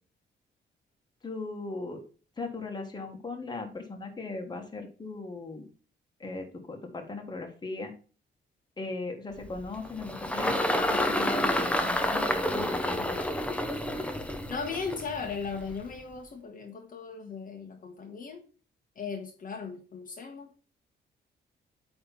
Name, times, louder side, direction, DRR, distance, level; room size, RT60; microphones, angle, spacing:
voice 1, 1.2-2.0 2.4-5.6 6.2-7.9 8.8-13.2, left 3 dB, 20° left, 3 dB, 1.6 m, -38 dB
Engine, 9.4-16.0, left 1 dB, 5° left, 0.8 m, -29 dB
voice 2, 14.5-18.4 18.9-20.7, left 5 dB, 45° left, 3 dB, 1.3 m, -37 dB
8.7 x 3.4 x 5.6 m, 0.38 s
cardioid pair, 125°, 19 cm